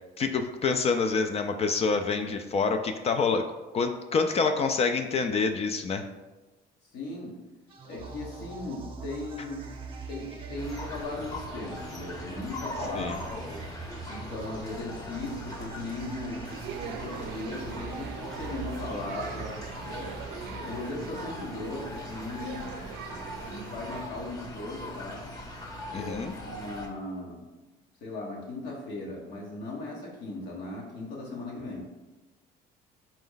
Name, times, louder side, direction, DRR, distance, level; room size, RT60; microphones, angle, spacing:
voice 1, 0.2-3.4 3.7-6.1 12.9-13.2 25.9-26.3, left 4 dB, 35° left, 6 dB, 0.4 m, -27 dB
voice 2, 6.9-7.4 7.9-9.6 10.1-13.5 14.0-16.4 16.8-19.6 20.0-20.1 20.5-22.6 23.5-25.3 25.9-27.4 28.0-31.9, left 2 dB, 80° left, -3 dB, 1.3 m, -37 dB
sound 1, 7.7-21.3, right 4 dB, 30° right, 0.6 m, -43 dB
sound 2, 10.6-26.9, left 1 dB, 20° left, 0.8 m, -41 dB
sound 3, 16.4-24.0, right 8 dB, 75° right, 0.4 m, -42 dB
4.3 x 3.1 x 3.9 m, 1.1 s
cardioid pair, 110°, 17 cm